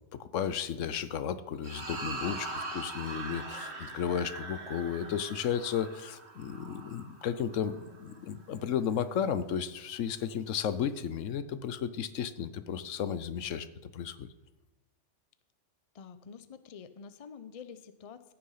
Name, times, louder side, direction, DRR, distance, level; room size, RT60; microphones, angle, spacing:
voice 1, 0.1-13.7 13.9-14.3, left 8 dB, 80° left, 14 dB, 1.1 m, -33 dB
sound 1, 1.6-8.2, right 3 dB, 60° right, 1.8 m, -42 dB
voice 2, 15.9-18.3, left 6 dB, 40° left, 12 dB, 0.6 m, -48 dB
15.5 x 6.9 x 5.6 m, 1.1 s
omnidirectional pair, 1.3 m